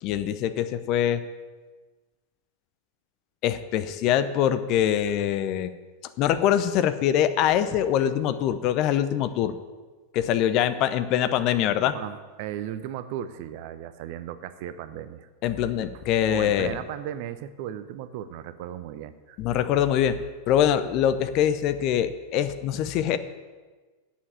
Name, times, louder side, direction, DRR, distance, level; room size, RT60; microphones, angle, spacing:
voice 1, 0.0-1.2 3.4-5.7 6.2-9.5 10.1-12.0 15.4-16.7 19.4-20.2 20.5-23.2, left 10 dB, 40° left, 11 dB, 0.7 m, -23 dB
voice 2, 11.9-15.3 15.9-16.0 16.3-19.4, right 11 dB, 45° right, 12 dB, 0.7 m, -36 dB
8.6 x 7.2 x 8.8 m, 1.3 s
figure-of-eight pair, 90°, 0 cm